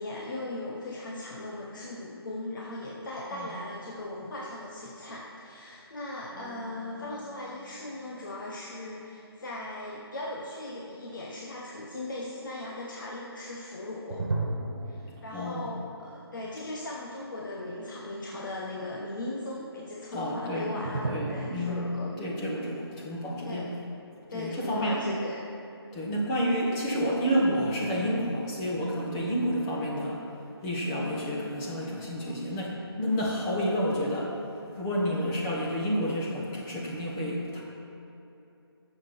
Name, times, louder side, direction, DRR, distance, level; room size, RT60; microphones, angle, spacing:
voice 1, 0.0-14.3 14.9-22.1 23.4-23.7 24.3-25.5 30.9-31.0 32.2-32.6 35.2-35.3, left 2 dB, 50° left, -3 dB, 1.1 m, -38 dB
sound 1, 6.3-9.6 14.1-17.1 17.4-17.5 20.8-24.1, right 2 dB, 60° right, 1.4 m, -38 dB
voice 2, 15.3-15.7 20.1-23.7 24.3-25.0 25.9-30.2 30.6-34.4 34.8-37.6, equal, 15° left, -4 dB, 1.2 m, -30 dB
17.5 x 7.0 x 4.3 m, 2.9 s
figure-of-eight pair, 165°, 14 cm